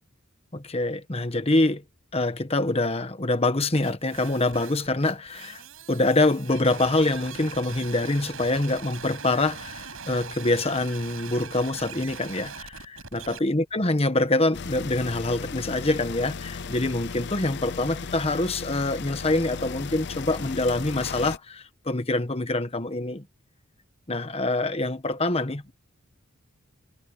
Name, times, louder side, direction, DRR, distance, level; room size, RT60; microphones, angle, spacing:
voice 1, 0.5-1.8 2.1-5.6 5.9-23.2 24.1-25.7, left 2 dB, 30° left, 1.3 m, -25 dB
sound 1, 3.7-13.4, right 6 dB, 80° right, 5.9 m, -41 dB
sound 2, 14.5-21.4, left 5 dB, 55° left, 0.7 m, -36 dB
head